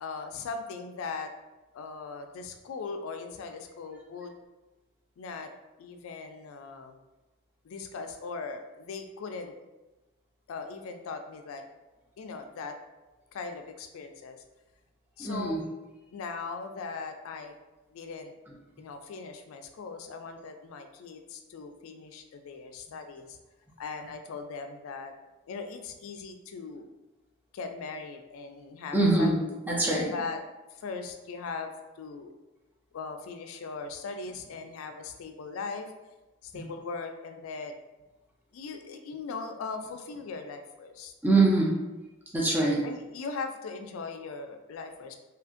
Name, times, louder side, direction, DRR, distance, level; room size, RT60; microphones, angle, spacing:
voice 1, 0.0-1.3 1.7-4.3 5.2-5.5 5.8-7.0 7.6-9.5 10.5-11.6 12.2-12.8 13.3-14.4 15.2-15.6 16.1-17.5 17.9-18.3 18.8-23.4 23.8-25.1 25.5-26.9 27.5-29.6 30.1-30.4 30.7-32.3 32.9-35.9 36.4-37.7 38.5-41.1 42.8-45.2, left 4 dB, 80° left, 6 dB, 0.3 m, -39 dB
voice 2, 15.2-15.6 28.9-29.4 29.7-30.1 36.5-36.6 41.2-41.7 42.3-42.9, right 2 dB, 10° right, -4 dB, 0.4 m, -23 dB
2.7 x 2.5 x 2.4 m, 1.1 s
head